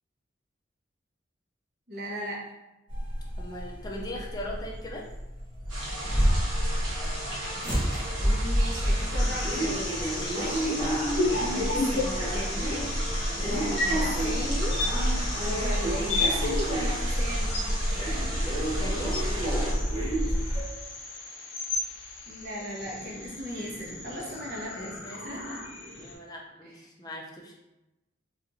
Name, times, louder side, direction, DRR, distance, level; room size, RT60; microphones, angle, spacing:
voice 1, 1.9-2.5 8.2-9.9 10.3-10.8 11.5-12.9 13.4-14.8 15.5-17.6 22.3-25.6 26.6-26.8, equal, 50° right, -4 dB, 0.7 m, -37 dB
sound 1, 2.9-20.6, equal, 25° right, 1.0 m, -29 dB
voice 2, 3.4-5.1 10.1-10.5 11.1-11.3 13.2-13.6 18.8-19.2 24.8-25.4 26.0-27.6, left 1 dB, 20° left, -1 dB, 0.4 m, -40 dB
sound 2, 5.7-19.7, right 1 dB, 80° right, 0.9 m, -36 dB
sound 3, 9.2-26.1, left 2 dB, 80° left, 0.6 m, -34 dB
2.9 x 2.4 x 2.5 m, 0.98 s
head